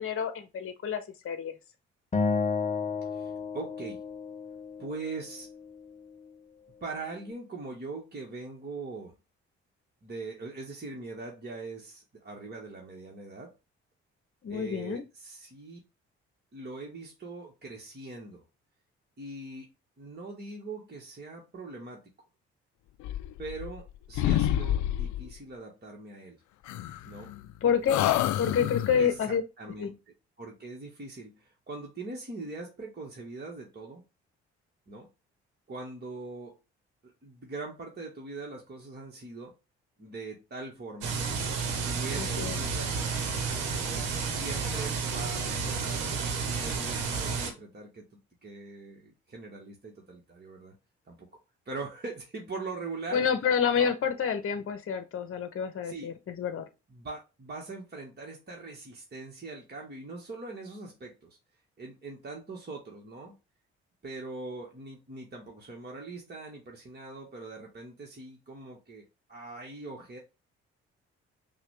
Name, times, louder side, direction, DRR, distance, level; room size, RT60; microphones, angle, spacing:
voice 1, 0.0-1.5 14.4-15.0 27.6-28.0 28.4-29.4 29.8-29.9 42.1-42.6 53.1-56.6, left 7 dB, 40° left, 0.9 m, -28 dB
Acoustic guitar, 2.1-5.4, left 4 dB, 20° left, 0.7 m, -32 dB
voice 2, 3.1-4.0 4.8-5.5 6.8-9.1 10.0-13.5 14.5-15.8 16.5-18.4 19.2-19.7 20.0-22.0 23.4-26.4 27.0-27.3 28.0-28.7 29.0-29.9 30.4-34.0 34.9-35.1 35.7-36.6 37.0-39.5 40.0-41.2 41.8-42.9 44.1-48.0 48.4-50.7 51.1-51.4 51.6-53.3 53.8-53.9 55.8-56.1 56.9-61.4 61.8-63.3 64.0-70.2, right 3 dB, 30° right, 1.6 m, -42 dB
sound 1, 23.0-23.9 24.1-25.3 26.7-27.5 27.9-29.1, left 12 dB, 60° left, 0.5 m, -28 dB
sound 2, 41.0-47.5, right 5 dB, 75° right, 1.1 m, -31 dB
5.7 x 2.5 x 3.4 m
hypercardioid pair, 45°, 33 cm